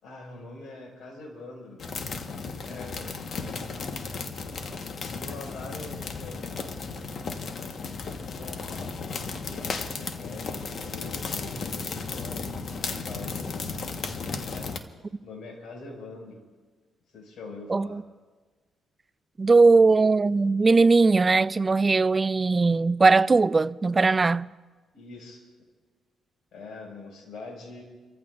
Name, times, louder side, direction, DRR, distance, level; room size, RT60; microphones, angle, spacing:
voice 1, 0.0-2.0 2.6-3.1 5.2-6.5 8.2-14.1 14.4-14.8 15.2-16.4 17.1-18.0 24.9-25.5 26.5-27.8, left 3 dB, 70° left, 5.4 m, -44 dB
sound 1, 1.8-14.8, left 4 dB, 55° left, 1.2 m, -34 dB
voice 2, 17.7-18.0 19.4-24.5, right 3 dB, 30° right, 0.3 m, -20 dB
30.0 x 15.0 x 2.5 m
cardioid pair, 90°, 0 cm